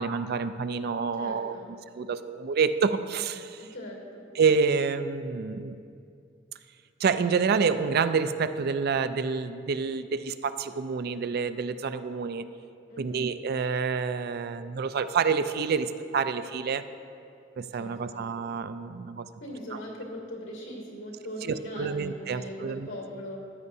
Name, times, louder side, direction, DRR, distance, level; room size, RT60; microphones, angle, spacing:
voice 1, 0.0-3.6 4.4-5.8 7.0-12.5 13.0-16.8 17.6-19.3 19.7-19.8 21.4-22.9, right 5 dB, 55° right, 11 dB, 0.4 m, -28 dB
voice 2, 1.2-1.7 3.6-4.3 12.9-13.3 17.8-18.3 19.4-23.4, equal, 80° left, -2 dB, 2.6 m, -40 dB
14.5 x 9.8 x 2.7 m, 2.5 s
head